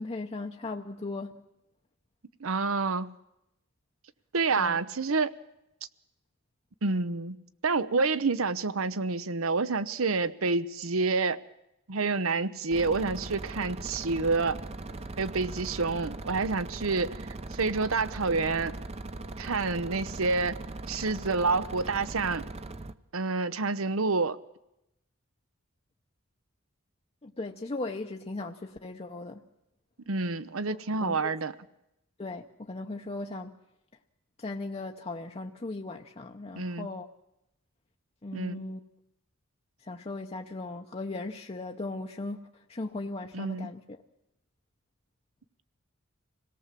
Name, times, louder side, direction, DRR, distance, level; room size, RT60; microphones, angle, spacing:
voice 1, 0.0-1.3 4.5-4.8 27.2-29.4 30.7-31.4 32.2-33.6 34.4-37.1 38.2-38.8 39.8-44.0, left 2 dB, 30° left, 3 dB, 0.8 m, -38 dB
voice 2, 2.4-3.1 4.3-5.3 6.8-7.4 7.6-11.4 11.9-14.6 15.2-17.2 17.5-18.7 19.4-20.6 20.9-22.4 23.1-24.4 30.1-31.5 36.6-36.9 38.3-38.6 43.3-43.7, right 3 dB, 75° right, 15 dB, 0.9 m, -28 dB
sound 1, 12.7-22.9, right 2 dB, 30° right, 0.7 m, -40 dB
26.0 x 18.0 x 7.5 m, 0.86 s
head